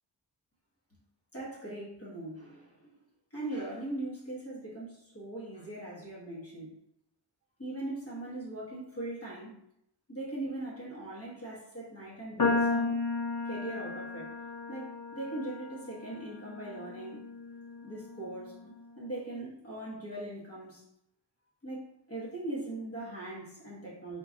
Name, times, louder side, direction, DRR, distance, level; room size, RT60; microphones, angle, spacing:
voice 1, 1.3-3.0 3.3-6.7 7.6-9.5 10.1-13.0 13.4-14.3 14.7-17.2 17.8-18.6 19.0-20.8 21.6-24.2, right 2 dB, 35° left, -6 dB, 1.0 m, -40 dB
sound 1, 12.4-18.7, left 3 dB, 55° left, 0.7 m, -34 dB
3.7 x 2.3 x 3.8 m, 0.77 s
wide cardioid pair, 135°, 43 cm